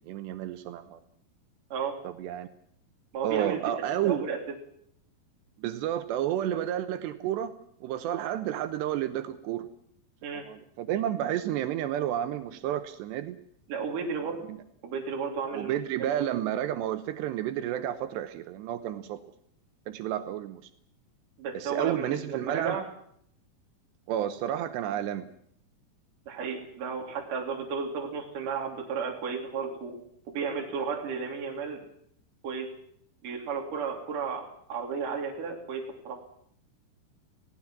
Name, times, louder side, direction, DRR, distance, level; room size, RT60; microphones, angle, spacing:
voice 1, 0.1-1.0 2.0-2.5 3.2-4.2 5.6-7.5 7.8-9.7 10.5-13.4 15.5-19.2 19.9-20.6 21.5-22.8 24.1-25.3, right 11 dB, 85° right, 8 dB, 3.2 m, -31 dB
voice 2, 3.1-3.8 4.0-4.4 10.2-10.5 13.7-14.4 14.8-16.1 21.4-22.9 26.3-30.0 30.3-31.8 32.4-32.7 33.2-36.2, right 5 dB, 50° right, 0 dB, 4.3 m, -33 dB
27.5 x 17.5 x 6.0 m, 0.68 s
omnidirectional pair, 4.9 m